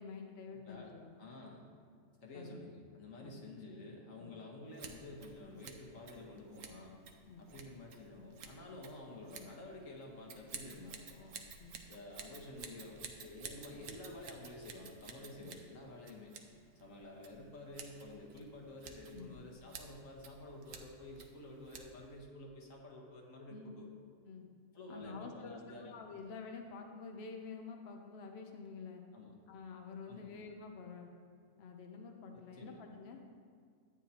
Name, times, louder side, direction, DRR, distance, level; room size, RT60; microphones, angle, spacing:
voice 1, 0.0-1.2 2.3-2.7 3.2-3.5 4.2-4.4 7.3-7.5 11.6-11.8 15.4-15.5 19.1-19.3 23.5-23.7 24.3-24.5 24.9-29.0 29.5-31.1 31.6-33.2, left 4 dB, 60° left, 3 dB, 0.9 m, -49 dB
voice 2, 0.5-0.9 1.2-1.7 2.2-7.0 7.4-11.3 11.9-16.3 16.7-23.9 24.7-26.0 29.1-29.4 30.1-30.3 32.3-32.8, left 2 dB, 90° left, -1 dB, 1.7 m, -50 dB
Scissors, 4.7-22.2, right 5 dB, 90° right, 1.2 m, -53 dB
12.0 x 8.8 x 2.9 m, 2.1 s
omnidirectional pair, 1.3 m